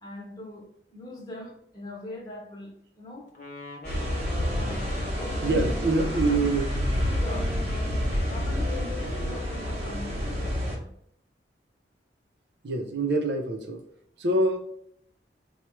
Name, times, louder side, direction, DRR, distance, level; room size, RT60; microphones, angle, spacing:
voice 1, 0.0-3.3 4.5-6.4 7.1-7.6 8.3-10.9, left 1 dB, 20° left, -3 dB, 1.0 m, -41 dB
Wind instrument woodwind instrument, 3.3-10.6, left 2 dB, 50° left, 0.7 m, -41 dB
sound 1, 3.8-10.8, equal, 35° right, 0.9 m, -29 dB
voice 2, 5.4-6.7 12.6-13.8 14.2-14.6, right 2 dB, 75° right, 2 dB, 0.6 m, -25 dB
4.5 x 2.3 x 3.0 m, 0.68 s
head